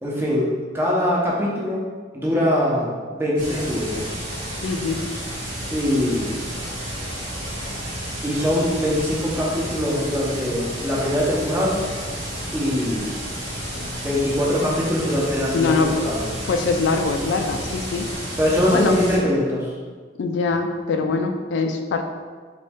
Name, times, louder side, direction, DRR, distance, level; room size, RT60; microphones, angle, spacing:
voice 1, 0.0-1.8 2.1-4.2 5.7-6.3 8.2-11.8 12.5-13.0 13.7-16.3 18.4-19.7, left 1 dB, 10° right, -5 dB, 0.8 m, -22 dB
sound 1, 3.4-19.2, equal, 90° right, 1.5 m, -31 dB
voice 2, 4.6-5.0 15.5-16.0 16.5-18.1 18.7-19.0 20.2-22.0, left 4 dB, 75° left, 5 dB, 0.3 m, -23 dB
4.0 x 3.1 x 3.5 m, 1.5 s
head